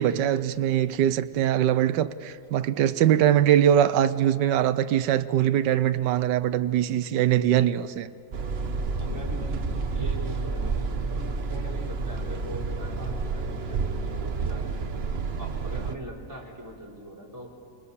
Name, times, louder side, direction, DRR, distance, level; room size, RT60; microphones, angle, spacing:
voice 1, 0.0-8.1, right 11 dB, 75° right, 1.4 m, -22 dB
sound 1, 8.3-16.0, right 4 dB, 40° right, 1.0 m, -30 dB
voice 2, 8.9-14.8 15.4-17.5, right 1 dB, 10° right, 4.3 m, -41 dB
30.0 x 27.5 x 7.1 m
omnidirectional pair, 1.9 m